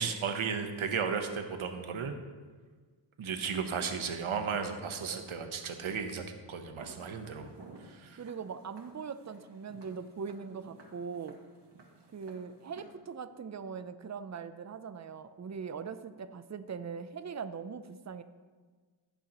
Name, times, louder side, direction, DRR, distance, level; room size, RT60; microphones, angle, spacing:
voice 1, 0.0-2.1 3.2-7.5 7.8-8.2, right 6 dB, 85° right, 6 dB, 1.1 m, -34 dB
Walk footsteps, 6.8-12.8, right 2 dB, 60° right, 1.9 m, -55 dB
voice 2, 8.2-11.4 12.1-18.2, right 6 dB, 35° right, 11 dB, 0.6 m, -41 dB
16.0 x 6.9 x 3.0 m, 1.5 s
cardioid pair, 65°, 47 cm